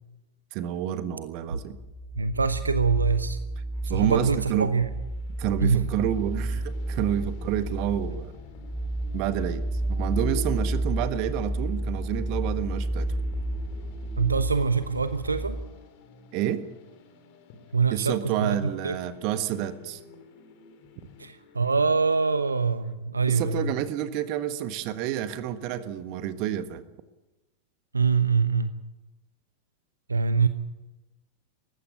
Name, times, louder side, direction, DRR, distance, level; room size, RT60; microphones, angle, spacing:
voice 1, 0.5-1.8 3.9-4.7 5.4-8.3 9.1-9.6 9.9-13.1 16.3-16.6 17.9-20.0 23.3-26.8, right 11 dB, 45° right, 11 dB, 1.5 m, -29 dB
sound 1, 1.7-15.7, right 1 dB, 10° left, 3.4 m, -31 dB
voice 2, 2.1-3.4 3.9-4.9 5.6-5.8 14.2-15.6 17.7-19.0 21.2-23.7 27.9-28.7 30.1-30.5, right 5 dB, 80° right, 12 dB, 0.9 m, -24 dB
sound 2, 3.7-22.9, left 5 dB, 45° left, 3.4 m, -53 dB
19.5 x 15.5 x 9.4 m, 1.0 s
figure-of-eight pair, 90°, 0 cm